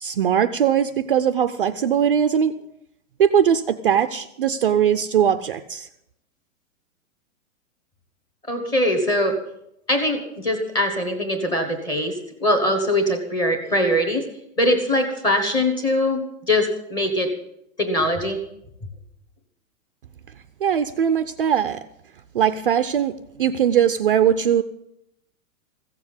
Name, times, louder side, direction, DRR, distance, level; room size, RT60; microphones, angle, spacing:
voice 1, 0.0-2.5 3.2-5.9 20.6-21.8 22.3-23.1 23.4-24.6, right 8 dB, 40° right, 10 dB, 0.5 m, -20 dB
voice 2, 8.5-9.4 9.9-14.3 14.6-16.2 16.5-17.3 17.8-18.4, left 1 dB, 10° left, 4 dB, 1.1 m, -22 dB
15.5 x 7.2 x 9.7 m, 0.79 s
supercardioid pair, 180°, 41 cm